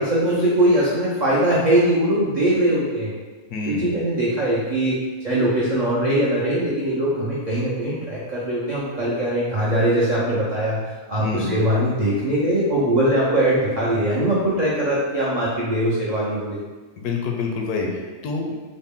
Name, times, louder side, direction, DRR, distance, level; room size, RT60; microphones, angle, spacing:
voice 1, 0.0-3.1 3.7-5.0 5.2-10.8 11.1-16.6, right 1 dB, 70° right, -8 dB, 0.4 m, -21 dB
voice 2, 3.5-3.9 11.2-11.5 17.0-18.6, left 4 dB, 85° left, 1 dB, 1.1 m, -27 dB
4.0 x 2.1 x 3.5 m, 1.3 s
omnidirectional pair, 1.6 m